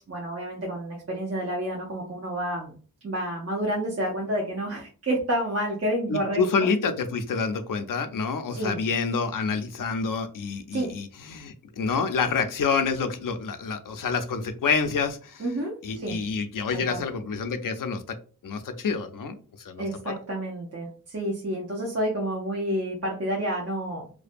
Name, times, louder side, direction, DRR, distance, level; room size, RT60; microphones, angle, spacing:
voice 1, 0.1-2.8 3.0-6.4 8.5-8.8 10.7-11.0 15.4-16.2 16.7-17.0 19.8-24.1, right 1 dB, 40° right, -2 dB, 0.6 m, -29 dB
voice 2, 6.1-15.4 15.8-18.2 18.4-20.2, left 5 dB, 60° left, 8 dB, 0.5 m, -28 dB
2.5 x 2.1 x 2.5 m, 0.38 s
wide cardioid pair, 85°, 38 cm